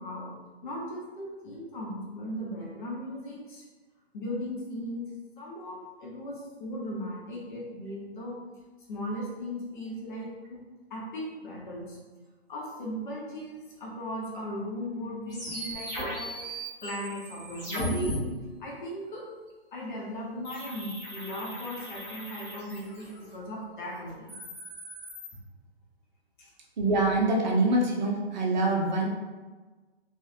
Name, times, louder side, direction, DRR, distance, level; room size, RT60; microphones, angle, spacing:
voice 1, 0.0-3.7 4.1-5.1 5.4-8.4 8.9-10.6 10.9-12.0 12.5-18.2 18.6-19.3 19.7-24.4 26.4-26.5, equal, 50° left, -3 dB, 0.9 m, -37 dB
sound 1, 15.3-18.1 20.4-23.3 24.1-25.3, equal, 10° left, 1.2 m, -37 dB
voice 2, 26.8-29.1, right 2 dB, 45° right, -1 dB, 0.6 m, -25 dB
3.0 x 2.4 x 2.7 m, 1.3 s
figure-of-eight pair, 130°, 32 cm